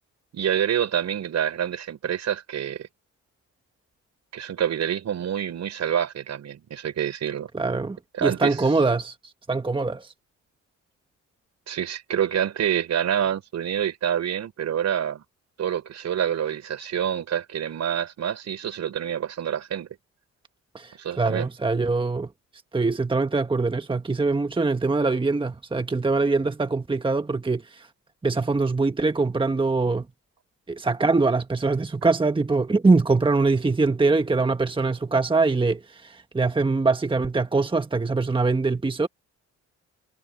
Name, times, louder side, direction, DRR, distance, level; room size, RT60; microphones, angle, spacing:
voice 1, 0.3-2.9 4.3-7.5 8.2-8.6 11.7-15.2 15.6-19.9 21.0-21.5, right 9 dB, 60° right, 5.5 m, -27 dB
voice 2, 7.5-10.1 20.7-22.3 22.7-27.9 28.2-30.0 30.7-39.1, right 3 dB, 15° right, 1.4 m, -23 dB
cardioid pair, 90°, 30 cm